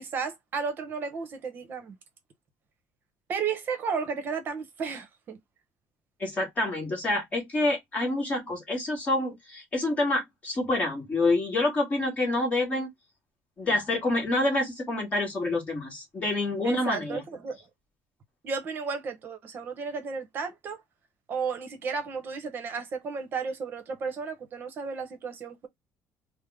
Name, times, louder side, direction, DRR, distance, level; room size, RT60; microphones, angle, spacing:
voice 1, 0.0-2.0 3.3-5.4 16.6-17.6 18.4-20.8 21.3-25.7, right 5 dB, 35° right, 0.9 m, -33 dB
voice 2, 6.2-12.9 13.6-17.2, left 2 dB, 25° left, 1.6 m, -27 dB
3.4 x 2.1 x 3.5 m
cardioid pair, 165°, 6 cm